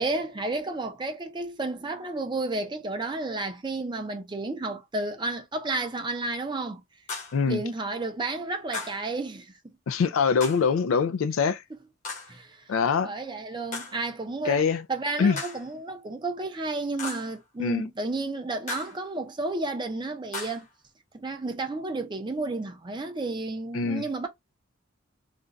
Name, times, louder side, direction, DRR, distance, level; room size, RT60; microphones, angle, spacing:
voice 1, 0.0-6.8 7.5-9.7 11.7-11.8 12.3-12.6 13.0-14.6 14.9-20.7 21.1-24.3, right 2 dB, 20° right, 0.5 m, -32 dB
sound 1, 7.1-7.4 8.7-9.1 10.4-10.7 12.0-12.4 13.7-14.0 15.4-15.7 17.0-17.4 18.7-19.0 20.3-20.7, left 3 dB, 35° left, 0.9 m, -37 dB
voice 2, 9.9-11.6 12.7-13.1 14.4-14.8 15.2-15.4 17.6-17.9 23.7-24.0, left 5 dB, 75° left, 0.3 m, -24 dB
2.5 x 2.2 x 3.8 m
head